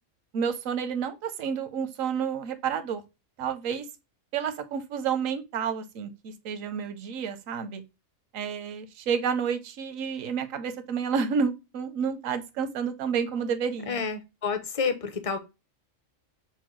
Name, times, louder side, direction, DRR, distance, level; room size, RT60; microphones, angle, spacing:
voice 1, 0.3-3.0 3.4-3.9 4.3-7.8 8.3-14.0, right 6 dB, 85° right, 1.1 m, -30 dB
voice 2, 13.9-15.4, left 5 dB, 35° left, 0.6 m, -29 dB
6.1 x 2.1 x 3.0 m
omnidirectional pair, 1.3 m